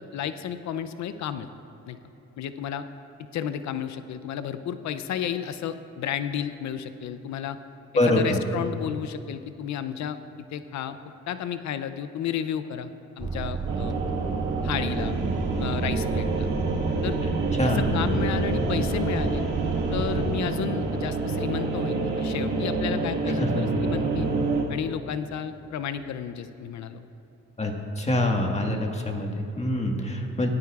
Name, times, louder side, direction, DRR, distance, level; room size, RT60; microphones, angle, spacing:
voice 1, 0.0-1.5 1.9-2.0 2.4-2.8 3.3-7.6 8.0-11.0 11.3-12.9 13.2-14.0 14.6-15.1 15.6-16.5 17.0-17.2 17.7-19.4 19.9-24.3 24.7-27.0, left 9 dB, 65° left, 11 dB, 0.6 m, -32 dB
voice 2, 8.0-8.4 17.6-17.8 23.4-23.7 27.6-30.5, left 1 dB, 20° left, 2 dB, 1.6 m, -25 dB
sound 1, 13.2-20.4, right 3 dB, 15° right, 0.6 m, -30 dB
sound 2, 13.7-24.6, right 3 dB, 80° right, 1.6 m, -28 dB
18.0 x 12.5 x 2.4 m, 2.9 s
cardioid pair, 90°, 30 cm